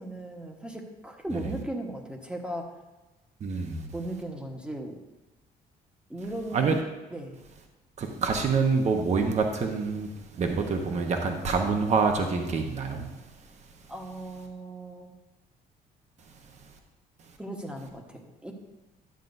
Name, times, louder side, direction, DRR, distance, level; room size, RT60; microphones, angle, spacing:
voice 1, 0.0-2.8 3.9-4.9 6.1-6.8 7.1-7.4 10.4-10.8 13.9-15.1 17.4-18.5, right 1 dB, 5° right, 2 dB, 1.2 m, -37 dB
voice 2, 3.4-3.9 6.5-6.8 8.0-10.1 10.4-13.1, right 4 dB, 40° right, 3 dB, 1.0 m, -26 dB
11.5 x 7.3 x 2.7 m, 1.1 s
cardioid pair, 110°, 17 cm